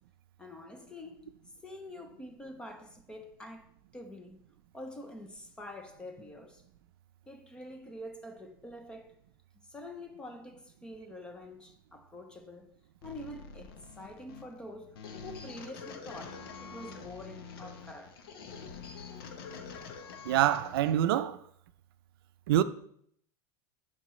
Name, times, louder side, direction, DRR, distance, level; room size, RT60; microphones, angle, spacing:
voice 1, 0.4-1.3 1.6-3.7 3.9-4.5 4.7-6.6 7.3-9.2 9.6-12.8 13.0-18.2, left 1 dB, 5° left, 0.5 m, -46 dB
sound 1, 13.0-21.0, left 5 dB, 90° left, 1.0 m, -46 dB
voice 2, 20.3-21.4 22.5-22.6, right 12 dB, 80° right, 0.5 m, -25 dB
12.0 x 4.6 x 3.1 m
supercardioid pair, 180°, 12 cm